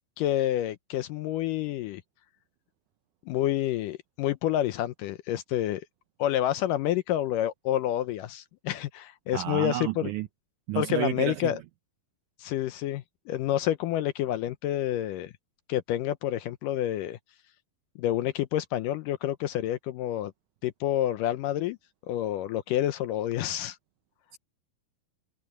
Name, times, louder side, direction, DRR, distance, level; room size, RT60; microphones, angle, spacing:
voice 1, 0.2-2.0 3.3-5.9 6.2-10.1 10.8-11.6 12.4-15.3 15.7-17.2 18.0-20.3 20.6-21.8 22.1-23.8, left 12 dB, 75° left, 2.1 m, -28 dB
voice 2, 9.3-10.3 10.7-11.5 24.3-24.4, right 14 dB, 80° right, 1.8 m, -31 dB
omnidirectional pair, 4.3 m